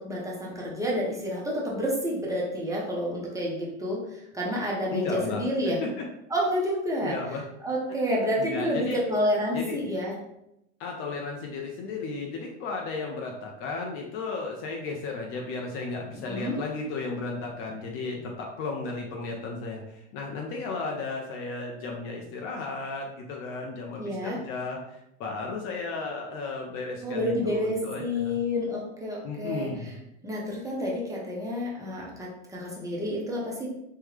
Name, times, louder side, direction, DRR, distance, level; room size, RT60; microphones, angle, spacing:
voice 1, 0.0-5.8 6.3-10.1 16.3-16.5 24.0-24.4 27.0-29.7 30.2-33.7, equal, 10° right, -4 dB, 0.6 m, -29 dB
voice 2, 4.9-6.0 7.0-7.4 8.4-9.0 9.5-9.8 10.8-28.4 29.2-29.9, left 3 dB, 35° left, 0 dB, 0.5 m, -34 dB
3.5 x 2.1 x 3.1 m, 0.83 s
hypercardioid pair, 125°, 40 cm